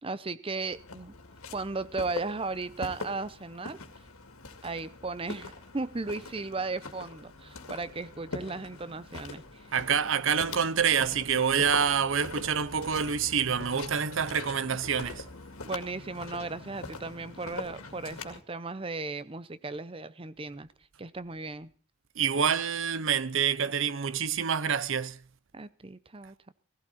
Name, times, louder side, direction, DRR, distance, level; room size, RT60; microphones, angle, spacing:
voice 1, 0.0-1.1 1.5-3.8 4.6-9.7 15.6-20.7 21.0-21.7 25.5-26.5, right 3 dB, 25° right, 0.6 m, -36 dB
Walk footsteps, 0.7-18.4, left 3 dB, 85° left, 2.2 m, -43 dB
voice 2, 9.7-15.2 22.2-25.2, right 7 dB, 65° right, 0.7 m, -27 dB
16.0 x 16.0 x 4.2 m
head